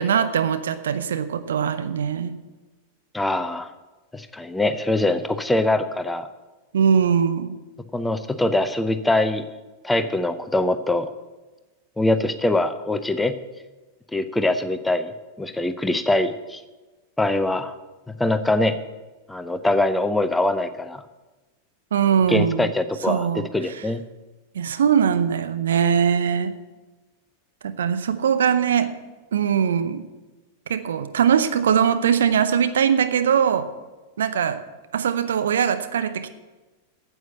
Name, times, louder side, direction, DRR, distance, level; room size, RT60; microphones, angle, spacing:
voice 1, 0.0-2.4 6.7-7.6 21.9-22.7 23.1-23.8 24.5-26.5 27.6-28.9 29.3-30.1 30.7-33.7 34.2-34.6 34.9-36.3, right 7 dB, 65° right, 10 dB, 0.7 m, -21 dB
voice 2, 3.1-3.7 4.1-6.3 7.9-9.4 9.8-11.1 12.0-13.4 14.1-15.1 15.4-16.6 17.2-17.7 18.1-18.8 19.3-21.0 22.3-24.0, left 2 dB, 5° left, 11 dB, 0.7 m, -23 dB
9.2 x 8.3 x 8.3 m, 1.2 s
figure-of-eight pair, 90°, 0 cm